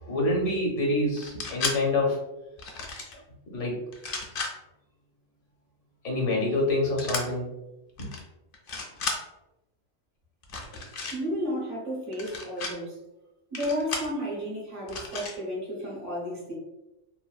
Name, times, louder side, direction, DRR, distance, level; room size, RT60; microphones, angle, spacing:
voice 1, 0.0-2.2 3.5-3.8 6.0-7.5 8.0-8.1, left 2 dB, 75° left, -1 dB, 1.2 m, -26 dB
sound 1, 1.2-1.8 2.6-3.1 3.9-4.5 7.0-7.2 8.0-8.2 8.5-9.2 10.4-11.2 12.1-12.7 13.5-14.1 14.9-15.3, left 3 dB, 55° left, 0.7 m, -33 dB
voice 2, 11.1-13.0 13.5-16.5, equal, 75° right, -4 dB, 1.4 m, -32 dB
3.3 x 2.2 x 2.3 m, 0.96 s
omnidirectional pair, 1.3 m